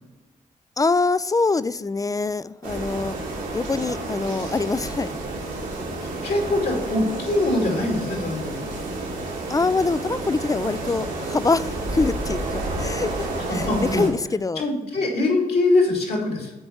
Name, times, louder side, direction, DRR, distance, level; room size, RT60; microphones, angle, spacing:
voice 1, 0.8-3.1 3.5-5.1 9.5-14.6, left 3 dB, 20° left, 17 dB, 0.4 m, -24 dB
sound 1, 2.6-14.1, right 2 dB, 85° right, 2.2 m, -30 dB
voice 2, 6.0-8.8 13.5-14.1 14.6-16.5, left 2 dB, 65° left, 0 dB, 2.7 m, -23 dB
9.0 x 4.2 x 6.6 m, 1.1 s
hypercardioid pair, 40°, 17 cm